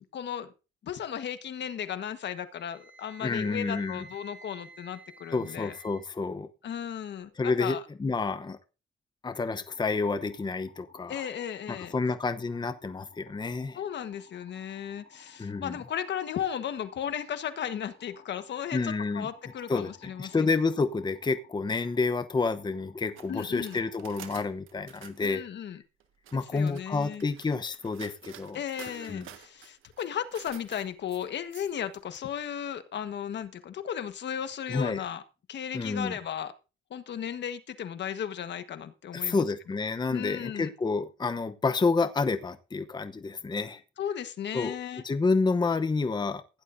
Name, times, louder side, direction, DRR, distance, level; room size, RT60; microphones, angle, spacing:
voice 1, 0.1-0.5 0.8-5.7 6.6-7.8 11.1-11.9 13.7-20.5 23.3-23.8 25.2-25.8 26.3-27.3 28.5-35.2 35.5-36.5 36.9-39.5 40.1-40.7 44.0-45.0, left 9 dB, 60° left, 10 dB, 1.4 m, -35 dB
Wind instrument woodwind instrument, 2.5-6.0, right 3 dB, 5° right, 6.6 m, -51 dB
voice 2, 3.2-4.0 5.3-6.5 7.4-8.6 9.2-11.2 11.7-13.8 15.4-15.8 18.7-19.3 19.7-25.4 26.3-28.6 28.9-29.3 34.7-35.0 35.7-36.2 39.1-43.8 44.5-44.8 45.0-46.4, left 4 dB, 20° left, 10 dB, 0.9 m, -29 dB
sound 1, 9.7-24.4, left 4 dB, 35° left, 5.1 m, -58 dB
sound 2, 23.1-25.2 26.0-32.2, right 10 dB, 85° right, 1.5 m, -50 dB
16.0 x 11.0 x 2.7 m, 0.31 s
cardioid pair, 90°, 20 cm